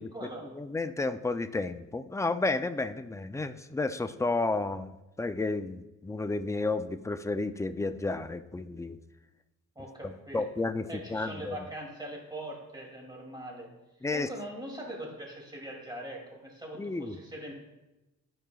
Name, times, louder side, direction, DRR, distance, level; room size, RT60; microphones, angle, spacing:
voice 1, 0.0-0.5 9.7-10.4 10.9-13.7 14.1-17.5, right 1 dB, 15° right, -1 dB, 2.7 m, -41 dB
voice 2, 0.5-9.0 10.0-11.6 14.0-14.3 16.8-17.2, left 3 dB, 10° left, 10 dB, 0.4 m, -32 dB
13.5 x 5.0 x 2.4 m, 1.0 s
cardioid pair, 80°, 31 cm